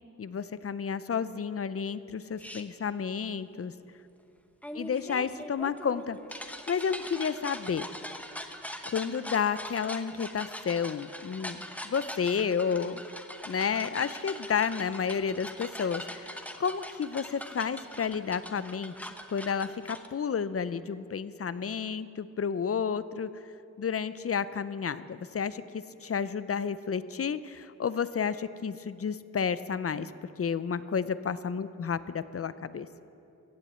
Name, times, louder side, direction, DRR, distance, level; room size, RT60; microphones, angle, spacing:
voice 1, 0.2-3.7 4.7-7.9 8.8-11.6 11.8-13.0 13.4-23.4 23.8-30.1 30.4-32.9, left 6 dB, 45° left, 15 dB, 0.5 m, -31 dB
sound 1, 2.4-2.6 4.6-20.1, equal, 5° left, 0.8 m, -42 dB
15.5 x 7.3 x 8.0 m, 2.8 s
wide cardioid pair, 85°, 32 cm